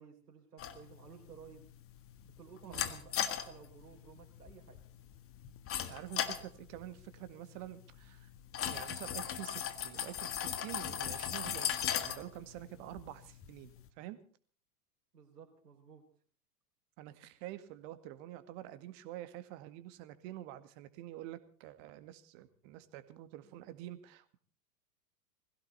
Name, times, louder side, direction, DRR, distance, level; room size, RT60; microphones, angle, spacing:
voice 1, 0.0-1.7 2.2-4.8 15.1-16.0 23.4-23.7, right 6 dB, 80° right, 1 dB, 3.9 m, -55 dB
sound 1, 0.6-13.9, left 10 dB, 30° left, 1.6 m, -40 dB
voice 2, 2.6-3.0 5.9-8.3 8.7-14.2 17.0-24.4, right 14 dB, 50° right, 11 dB, 2.0 m, -48 dB
21.5 x 16.0 x 4.2 m, 0.43 s
hypercardioid pair, 100°, 47 cm